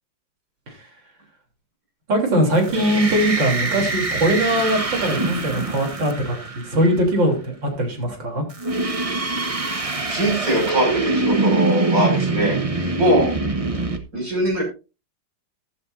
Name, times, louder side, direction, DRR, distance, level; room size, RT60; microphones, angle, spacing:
voice 1, 2.1-8.4, right 1 dB, 85° right, 2 dB, 4.2 m, -21 dB
sound 1, 2.5-7.0 8.5-14.0, right 3 dB, 20° right, 1.0 m, -24 dB
voice 2, 10.1-12.6 13.0-13.3 14.1-14.6, right 1 dB, 50° right, 1 dB, 6.6 m, -21 dB
15.0 x 11.0 x 2.7 m, 0.30 s
omnidirectional pair, 2.0 m